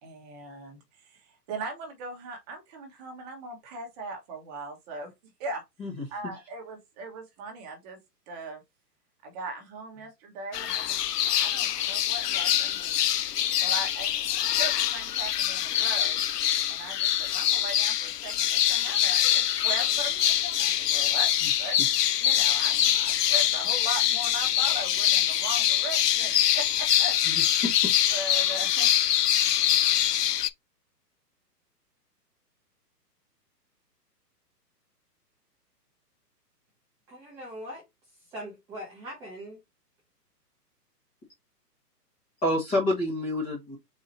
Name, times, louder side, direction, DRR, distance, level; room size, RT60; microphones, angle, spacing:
voice 1, 0.0-5.1 5.4-5.6 6.1-8.0 8.3-8.6 9.2-13.1 13.6-14.1 14.6-16.2 16.7-21.3 21.6-21.8 22.2-27.2 28.1-28.9, right 2 dB, 25° right, 1.1 m, -39 dB
sound 1, 10.5-30.5, left 11 dB, 70° left, 0.6 m, -24 dB
voice 2, 27.3-27.7 42.4-43.8, left 1 dB, 10° left, 1.1 m, -28 dB
voice 3, 37.1-37.8 38.3-39.6, equal, 5° right, 0.6 m, -41 dB
4.1 x 2.8 x 4.2 m
hypercardioid pair, 150°, 49 cm